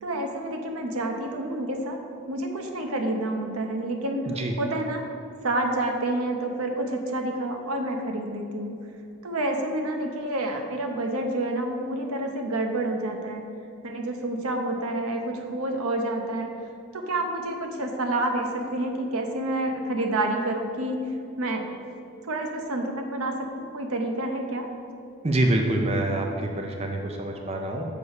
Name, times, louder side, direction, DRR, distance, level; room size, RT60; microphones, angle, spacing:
voice 1, 0.0-2.0 2.3-4.2 4.6-5.0 5.4-8.8 9.2-13.4 13.8-16.6 16.9-21.0 21.4-21.7 22.3-24.7, right 1 dB, 85° right, 3 dB, 0.8 m, -28 dB
voice 2, 25.2-27.8, right 1 dB, 30° right, 2 dB, 0.5 m, -26 dB
6.8 x 5.3 x 4.8 m, 2.6 s
head